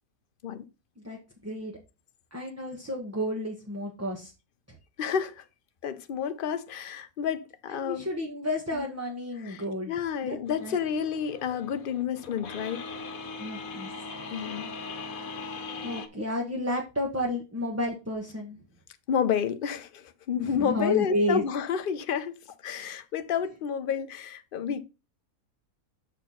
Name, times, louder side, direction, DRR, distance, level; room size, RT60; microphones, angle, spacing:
voice 1, 1.4-1.8 2.3-4.3 4.7-4.8 7.7-9.9 10.2-10.8 13.4-13.9 15.8-18.6 20.4-21.4, left 1 dB, 10° right, 1.1 m, -31 dB
voice 2, 5.0-5.4 5.8-8.0 8.7-8.8 9.4-12.9 14.3-14.7 19.1-22.4 22.6-24.8, left 7 dB, 50° left, 0.7 m, -30 dB
sound 1, 10.5-16.1, left 4 dB, 70° left, 1.4 m, -40 dB
7.1 x 4.4 x 5.6 m
omnidirectional pair, 1.6 m